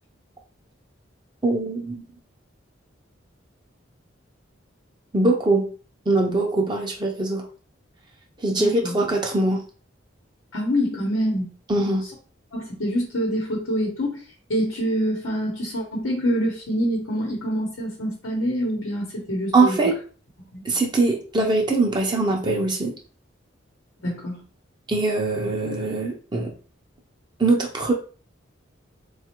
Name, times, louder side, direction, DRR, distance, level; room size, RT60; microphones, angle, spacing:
voice 1, 1.4-2.0 5.1-5.7 6.1-7.4 8.4-9.6 11.7-12.1 19.5-20.0 20.6-22.9 24.9-26.5 27.4-27.9, right 2 dB, 25° right, 0 dB, 0.5 m, -22 dB
voice 2, 8.5-8.9 10.5-11.5 12.0-12.1 12.5-19.8 20.5-20.6 24.0-24.4, equal, 90° left, -1 dB, 0.9 m, -26 dB
4.1 x 2.3 x 2.9 m, 0.39 s
head